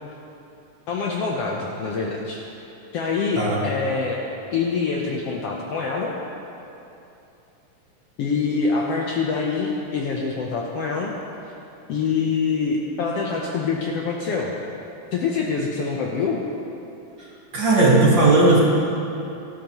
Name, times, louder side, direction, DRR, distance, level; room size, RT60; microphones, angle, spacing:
voice 1, 0.9-2.4 2.9-4.2 4.5-6.1 8.2-11.1 11.9-14.5 15.1-16.4, left 5 dB, 70° left, -1 dB, 1.5 m, -25 dB
voice 2, 3.4-3.7 17.2-18.6, right 2 dB, 45° right, -5 dB, 1.7 m, -17 dB
17.0 x 13.0 x 3.0 m, 2.8 s
omnidirectional pair, 3.5 m